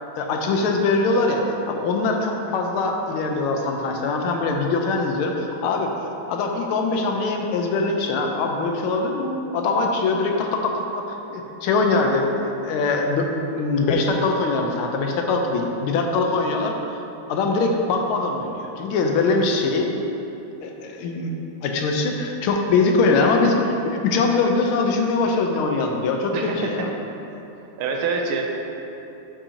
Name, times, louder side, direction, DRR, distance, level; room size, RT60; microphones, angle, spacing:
voice 1, 0.2-5.3 5.6-5.9 6.3-11.0 11.3-16.7 17.3-19.9 20.6-21.3 21.6-26.9, left 3 dB, 80° left, 2 dB, 1.5 m, -22 dB
voice 2, 26.3-26.9 27.8-28.4, right 4 dB, 80° right, 1 dB, 1.5 m, -26 dB
8.2 x 5.7 x 2.7 m, 2.9 s
omnidirectional pair, 2.4 m